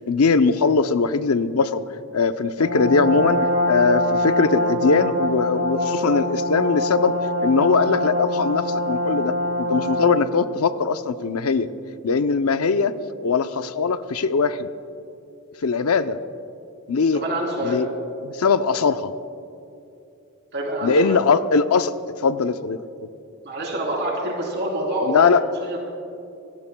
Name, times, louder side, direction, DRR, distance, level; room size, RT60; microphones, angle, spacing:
voice 1, 0.1-1.8 2.1-3.4 3.7-7.1 7.4-11.7 12.0-13.0 13.2-14.7 15.6-16.2 16.9-17.2 17.6-17.9 18.2-19.1 20.8-22.0 22.2-22.8 25.1-25.4, left 4 dB, 85° left, 11 dB, 0.6 m, -20 dB
Brass instrument, 2.6-10.3, left 1 dB, 85° right, 3.3 m, -24 dB
voice 2, 17.1-17.8 20.5-21.2 23.4-25.9, right 1 dB, 50° right, -2 dB, 3.5 m, -26 dB
26.0 x 17.5 x 2.3 m, 2.7 s
head